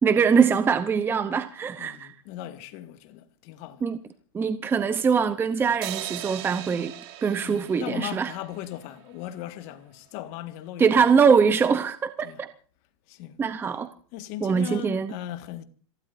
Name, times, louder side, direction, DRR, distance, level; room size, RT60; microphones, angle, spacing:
voice 1, 0.0-2.1 3.8-4.0 4.3-6.9 7.2-8.3 10.8-12.5 13.4-13.9 14.4-15.1, right 6 dB, 15° right, 0.8 m, -22 dB
voice 2, 1.8-3.9 7.4-10.9 12.2-12.4 13.1-13.4 14.1-15.6, left 12 dB, 45° left, 1.8 m, -38 dB
sound 1, 5.8-9.1, right 13 dB, 50° right, 3.9 m, -39 dB
27.5 x 16.5 x 2.7 m
supercardioid pair, 145°, 17 cm